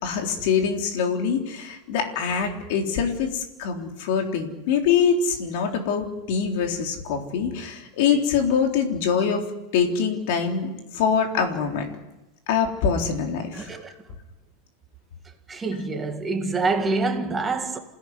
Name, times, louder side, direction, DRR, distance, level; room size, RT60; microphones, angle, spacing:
voice 1, 0.0-9.5 9.7-11.9 12.5-13.7, left 6 dB, 45° left, 3.8 m, -24 dB
voice 2, 13.5-13.9 15.5-17.8, right 3 dB, 10° right, 2.0 m, -26 dB
27.5 x 17.0 x 9.7 m
supercardioid pair, 175°, 0 cm